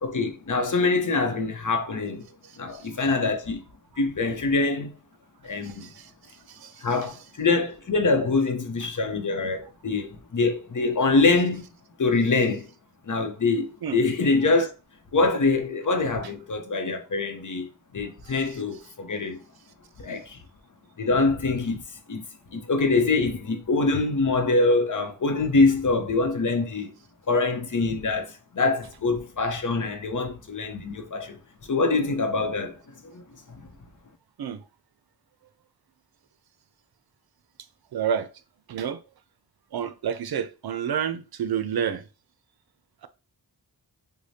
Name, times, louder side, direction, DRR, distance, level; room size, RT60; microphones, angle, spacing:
voice 1, 0.0-2.3 2.6-3.6 4.0-4.9 5.4-5.9 6.8-11.7 12.0-12.6 13.1-14.7 15.1-19.4 20.0-20.4 21.0-21.8 22.1-22.2 22.5-26.9 27.3-31.4 31.7-32.7 33.0-33.2 33.5-33.6, left 3 dB, 50° left, 0.8 m, -24 dB
voice 2, 2.3-2.9 5.6-6.9 13.8-14.0 18.2-18.6 34.4-34.6 37.9-38.3 38.7-39.0 39.7-42.1, right 8 dB, 70° right, 0.5 m, -30 dB
4.8 x 2.2 x 2.7 m
wide cardioid pair, 75°, 39 cm